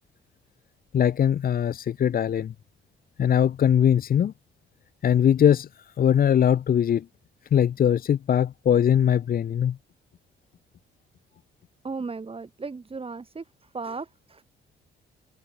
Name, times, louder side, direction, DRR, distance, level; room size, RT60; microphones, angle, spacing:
voice 1, 0.9-2.5 3.2-4.3 5.0-5.7 6.0-7.1 7.5-9.8, left 9 dB, 45° left, 0.7 m, -21 dB
voice 2, 11.8-13.4 13.7-14.4, right 4 dB, 30° right, 4.6 m, -35 dB
cardioid pair, 90°, 20 cm